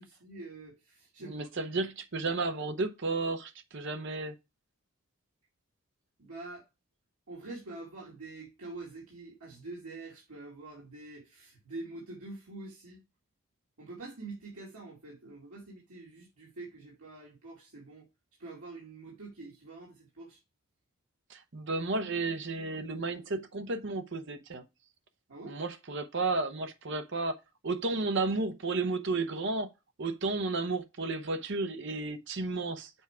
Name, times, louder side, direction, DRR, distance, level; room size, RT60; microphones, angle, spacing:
voice 1, 0.0-1.5 6.2-6.6 7.3-13.0 13.8-18.1 18.4-20.4 25.3-25.6, right 2 dB, 85° right, 2.5 m, -46 dB
voice 2, 1.2-4.3 21.3-24.6 25.5-27.4 27.6-29.7 30.0-32.9, right 3 dB, 55° right, 0.8 m, -33 dB
7.1 x 4.7 x 4.8 m
head